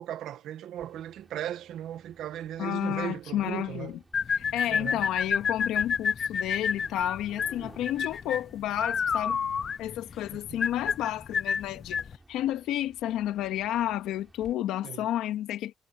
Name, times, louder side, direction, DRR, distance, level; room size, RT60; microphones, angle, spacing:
voice 1, 0.0-4.0 4.3-5.0 10.3-10.6 14.8-15.1, right 11 dB, 80° right, 1.8 m, -37 dB
sound 1, 0.8-14.5, right 2 dB, 20° right, 5.9 m, -57 dB
voice 2, 2.6-3.9 4.3-9.4 9.8-15.7, left 12 dB, 90° left, 2.2 m, -31 dB
sound 2, 4.1-12.2, left 6 dB, 50° left, 0.5 m, -29 dB
cardioid pair, 90°, 0 cm